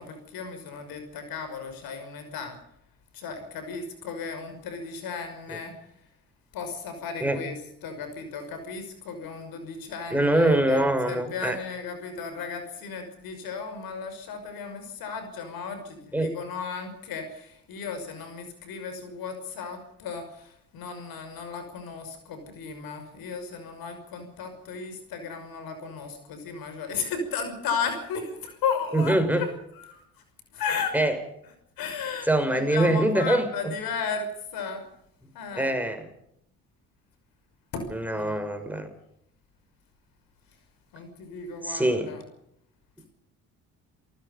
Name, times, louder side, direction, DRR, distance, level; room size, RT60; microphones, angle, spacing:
voice 1, 0.0-2.6 3.1-5.7 6.5-30.0 30.5-31.0 31.8-34.8 35.3-35.7 37.7-38.4 40.9-42.2, left 5 dB, 75° left, 8 dB, 5.9 m, -35 dB
voice 2, 10.1-11.6 16.1-16.3 28.9-29.5 30.9-31.2 32.2-33.5 35.5-36.0 37.9-38.9 41.6-42.1, right 1 dB, 5° right, 7 dB, 6.1 m, -23 dB
28.5 x 19.5 x 5.3 m, 0.74 s
supercardioid pair, 60°, 36 cm